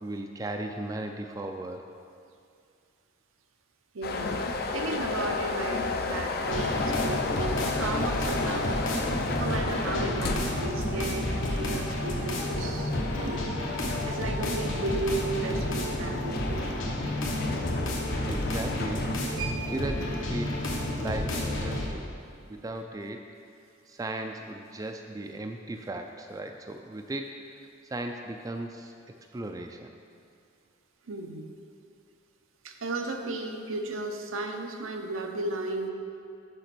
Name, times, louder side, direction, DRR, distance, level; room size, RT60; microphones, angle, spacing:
voice 1, 0.0-1.8 17.9-19.1 19.7-22.1 22.5-23.3 23.9-27.3 27.6-28.9 29.3-29.9, right 2 dB, 20° right, 4 dB, 0.3 m, -36 dB
voice 2, 3.9-8.7 9.4-13.5 14.0-16.8 19.4-19.7 31.1-31.5 32.6-35.9, right 2 dB, 85° right, 4 dB, 0.7 m, -34 dB
sound 1, 4.0-19.2, left 3 dB, 50° left, 0.5 m, -33 dB
sound 2, 6.4-21.9, left 1 dB, 75° left, 1.1 m, -31 dB
6.7 x 5.1 x 6.0 m, 2.4 s
head